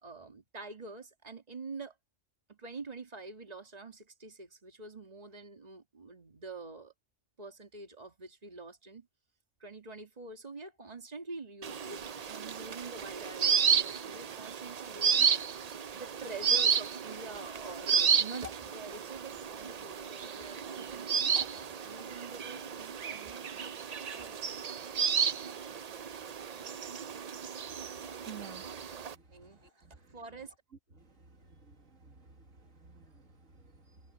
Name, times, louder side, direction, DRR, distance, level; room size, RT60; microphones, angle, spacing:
voice 1, 0.0-1.9 2.5-6.9 7.4-9.1 9.6-15.3 15.9-24.4 29.3-30.6, right 3 dB, 30° right, 2.4 m, -46 dB
sound 1, 11.6-29.1, right 7 dB, 55° right, 0.4 m, -32 dB
voice 2, 28.0-29.2 29.5-30.2 31.0-34.0, right 7 dB, 70° right, 2.5 m, -53 dB
omnidirectional pair, 1.4 m